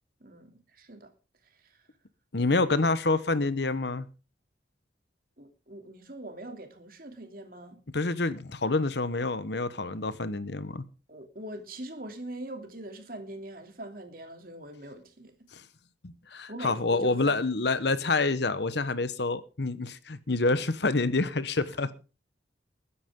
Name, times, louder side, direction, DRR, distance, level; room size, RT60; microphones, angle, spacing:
voice 1, 0.2-1.1 1.5-1.8 5.4-7.8 11.1-15.3 16.3-17.4 17.7-17.9, right 1 dB, 50° right, 2.9 m, -43 dB
voice 2, 2.3-4.1 7.9-10.8 15.5-15.6 16.0-21.9, left 3 dB, 65° left, 1.0 m, -27 dB
21.0 x 10.0 x 3.7 m
head